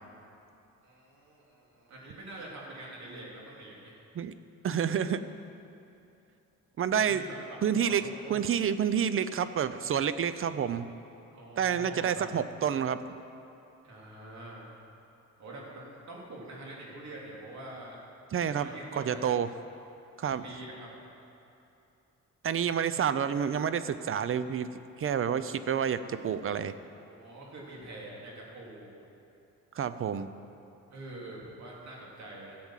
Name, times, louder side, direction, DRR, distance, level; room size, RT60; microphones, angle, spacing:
voice 1, 0.8-3.9 6.9-7.6 7.8-8.4 11.3-12.4 13.8-14.7 15.4-18.0 18.3-19.2 20.2-20.9 27.0-28.9 30.9-32.6, right 1 dB, 65° right, -3 dB, 3.3 m, -45 dB
voice 2, 4.6-5.2 6.8-7.2 7.6-8.0 8.3-10.9 11.6-13.0 18.3-18.7 19.0-19.5 20.2-20.4 22.4-24.7 25.0-26.7 29.8-30.3, right 8 dB, 45° right, 13 dB, 0.6 m, -29 dB
13.5 x 7.8 x 7.5 m, 2.8 s
cardioid pair, 90°, 30 cm